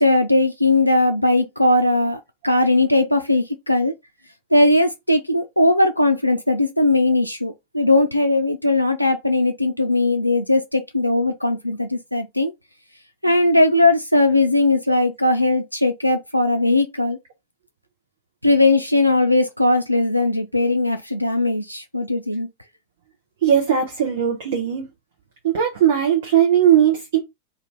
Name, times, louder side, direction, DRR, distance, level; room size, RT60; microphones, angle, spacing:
voice 1, 0.0-3.9 4.5-12.5 13.2-17.2 18.4-22.5, left 2 dB, 90° left, 0.3 m, -19 dB
voice 2, 23.4-24.9 25.4-27.2, right 9 dB, 60° right, 0.8 m, -18 dB
2.7 x 2.5 x 3.3 m
figure-of-eight pair, 90°, 0 cm